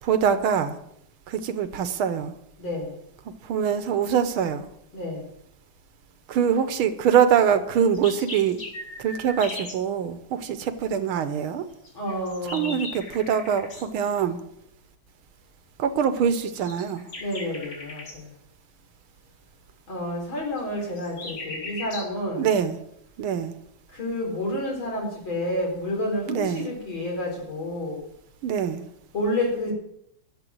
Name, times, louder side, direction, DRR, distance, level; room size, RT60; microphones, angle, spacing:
voice 1, 0.0-0.8 1.3-2.3 3.4-4.7 6.3-8.6 9.0-11.7 12.5-14.4 15.8-17.0 22.3-22.8 23.2-23.6 26.3-26.7 28.4-28.8, right 8 dB, 90° right, 11 dB, 1.9 m, -24 dB
voice 2, 2.6-3.0 4.9-5.3 11.9-12.8 17.2-18.3 19.9-22.5 23.9-28.1 29.1-29.7, left 1 dB, 75° left, -1 dB, 5.2 m, -29 dB
sound 1, 7.8-9.8 11.8-13.9 16.5-18.2 20.6-22.1, left 2 dB, 45° left, 2.9 m, -38 dB
12.5 x 7.3 x 7.8 m, 0.76 s
omnidirectional pair, 2.2 m